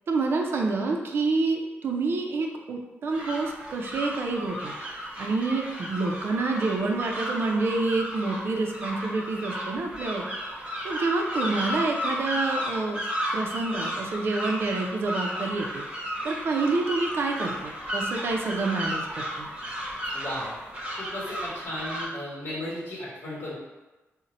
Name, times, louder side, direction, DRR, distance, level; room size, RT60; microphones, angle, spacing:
voice 1, 0.1-10.2 10.8-13.0 13.3-15.8 16.2-19.5, right 3 dB, 55° right, 2 dB, 0.4 m, -28 dB
sound 1, 3.1-22.1, equal, 25° right, 0.7 m, -33 dB
voice 2, 20.1-20.5 21.0-23.5, left 1 dB, 55° left, -7 dB, 1.1 m, -35 dB
2.6 x 2.1 x 4.0 m, 1.2 s
wide cardioid pair, 175°, 5 cm